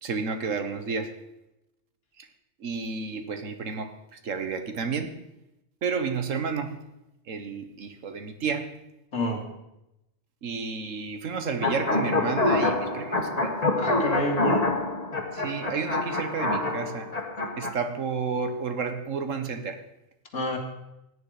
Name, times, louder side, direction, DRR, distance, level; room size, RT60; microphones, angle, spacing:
voice 1, 0.0-1.1 2.2-2.3 2.6-5.2 5.8-6.8 7.3-8.8 10.4-13.6 15.3-17.1 17.6-19.8, right 5 dB, 85° right, 8 dB, 1.6 m, -31 dB
voice 2, 9.1-9.5 13.8-14.7 20.3-20.6, left 1 dB, 80° left, 2 dB, 2.5 m, -28 dB
sound 1, 11.6-17.7, left 2 dB, 30° left, 1.5 m, -26 dB
16.5 x 9.6 x 5.0 m, 0.89 s
omnidirectional pair, 1.3 m